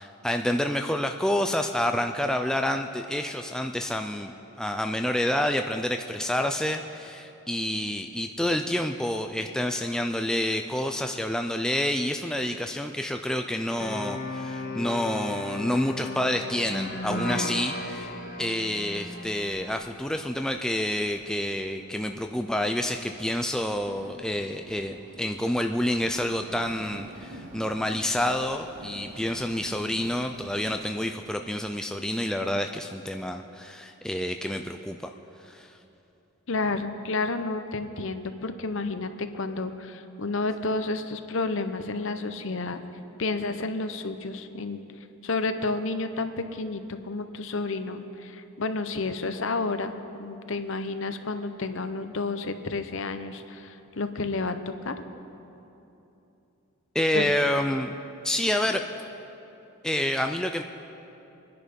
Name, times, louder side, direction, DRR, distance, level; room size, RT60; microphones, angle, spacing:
voice 1, 0.0-18.1 18.4-35.0 35.4-35.7 56.9-58.0 58.2-58.8 59.8-60.6, left 1 dB, 5° left, 4 dB, 0.4 m, -28 dB
sound 1, 13.8-19.7, left 2 dB, 40° left, 1.3 m, -35 dB
Train, 18.1-30.9, right 1 dB, 75° right, 2.3 m, -49 dB
voice 2, 36.5-42.8 43.2-44.8 45.2-49.9 50.2-54.6 54.8-54.9 57.1-57.3 58.4-58.5, left 3 dB, 60° left, 9 dB, 0.8 m, -30 dB
24.5 x 10.0 x 5.3 m, 2.9 s
head